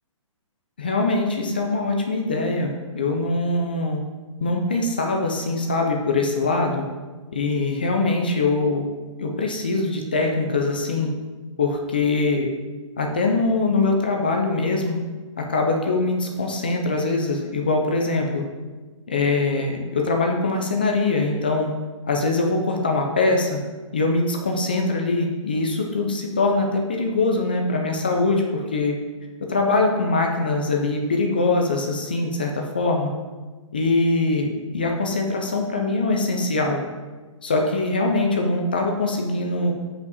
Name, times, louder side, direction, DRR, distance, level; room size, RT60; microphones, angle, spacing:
voice 1, 0.8-4.0 4.4-6.9 7.3-8.9 9.2-11.1 11.6-12.5 13.0-15.0 15.4-18.5 19.1-21.7 22.1-23.6 23.9-28.9 29.4-33.1 33.7-36.8 37.4-39.7, left 3 dB, 15° left, 2 dB, 0.4 m, -22 dB
7.0 x 5.5 x 4.0 m, 1.3 s
hypercardioid pair, 175°, 17 cm